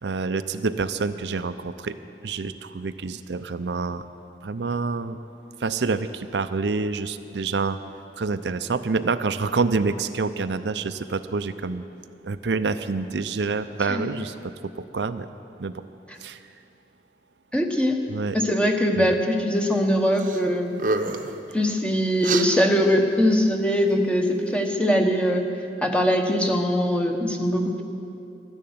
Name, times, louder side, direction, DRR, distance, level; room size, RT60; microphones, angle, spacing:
voice 1, 0.0-2.0 2.2-4.0 4.4-5.2 5.6-7.8 8.2-11.8 12.2-15.3 15.6-15.8 16.2-16.4 18.1-18.4 19.0-19.2, right 4 dB, 80° right, 10 dB, 0.6 m, -27 dB
voice 2, 17.5-18.0 18.3-20.8 21.5-25.4 25.8-27.8, equal, 5° left, 3 dB, 1.0 m, -22 dB
sound 1, 20.2-20.4 20.7-21.4 22.2-22.5, right 3 dB, 45° right, 0.8 m, -27 dB
13.0 x 10.5 x 9.4 m, 2.7 s
head